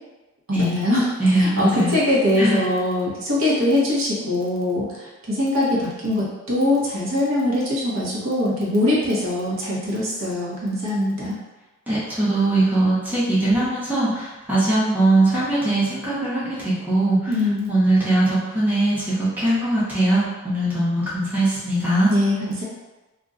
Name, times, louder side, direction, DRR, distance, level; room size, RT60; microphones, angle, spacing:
voice 1, 0.5-11.4 17.3-17.7 22.1-22.6, left 1 dB, 70° right, -5 dB, 0.8 m, -22 dB
voice 2, 1.2-1.9 2.4-2.6 11.9-17.3 17.7-22.1, right 2 dB, 10° right, -10 dB, 0.7 m, -21 dB
2.5 x 2.2 x 3.7 m, 1.1 s
head